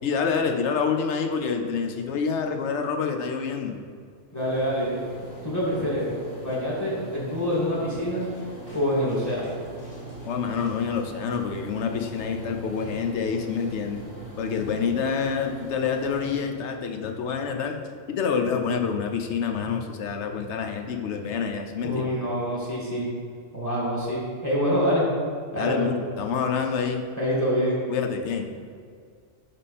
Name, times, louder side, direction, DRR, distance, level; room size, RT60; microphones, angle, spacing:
voice 1, 0.0-3.8 10.3-14.1 14.4-17.8 18.1-22.1 25.5-27.0 27.9-28.5, left 6 dB, 85° left, 4 dB, 1.0 m, -27 dB
sound 1, 4.3-16.4, right 1 dB, 40° left, 1.8 m, -41 dB
voice 2, 4.3-5.0 5.4-6.1 6.4-8.2 8.7-9.5 21.8-23.1 23.5-25.1 25.5-25.9 27.2-27.8, equal, 15° left, -5 dB, 1.9 m, -26 dB
10.5 x 3.7 x 4.1 m, 2.2 s
omnidirectional pair, 1.1 m